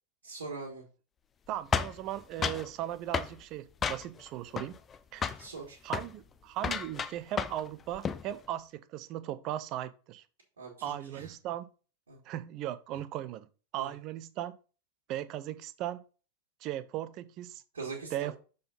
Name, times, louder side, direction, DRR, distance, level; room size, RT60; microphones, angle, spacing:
voice 1, 0.2-0.8 5.4-5.8 10.6-11.3 12.1-12.2 13.8-13.9 17.7-18.3, right 4 dB, 70° right, 2.0 m, -42 dB
voice 2, 1.5-4.7 5.1-5.4 5.8-10.2 10.8-11.7 12.3-13.5 13.7-14.5 15.1-16.0 16.6-17.6 18.1-18.4, right 12 dB, 40° right, 0.6 m, -37 dB
sound 1, 1.7-2.7 3.1-3.4 3.8-4.3 4.6-5.0 5.2-5.5 5.9-6.1 6.6-7.7 7.9-8.3, left 6 dB, 20° left, 0.5 m, -32 dB
6.8 x 4.0 x 5.2 m
figure-of-eight pair, 90°, 0 cm